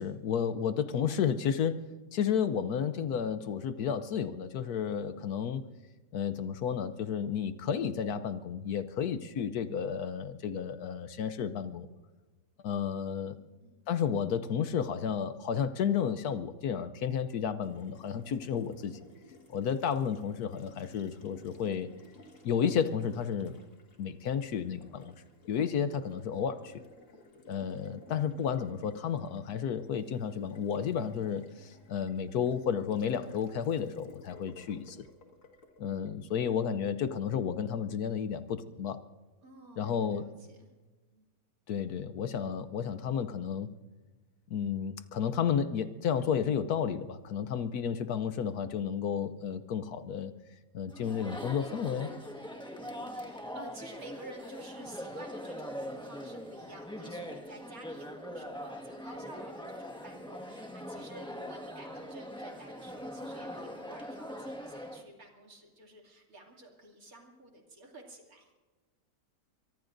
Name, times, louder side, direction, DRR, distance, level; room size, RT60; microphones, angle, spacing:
voice 1, 0.0-1.8 2.1-5.6 6.1-11.9 12.6-13.4 13.9-19.0 19.5-21.9 22.4-23.5 24.0-25.1 25.5-26.8 27.5-35.1 35.8-39.0 39.8-40.2 41.7-43.7 44.5-50.3 50.7-52.1, left 7 dB, 70° left, 11 dB, 1.1 m, -32 dB
voice 2, 13.3-13.8 39.4-40.7 41.1-41.3 52.8-68.5, right 1 dB, 55° right, 1 dB, 3.0 m, -51 dB
Water tap faucet, 17.6-36.8, left 2 dB, 50° left, 2.1 m, -57 dB
Chatter, 50.9-65.0, equal, 5° left, 1.5 m, -42 dB
24.0 x 22.5 x 2.6 m, 1.3 s
omnidirectional pair, 1.8 m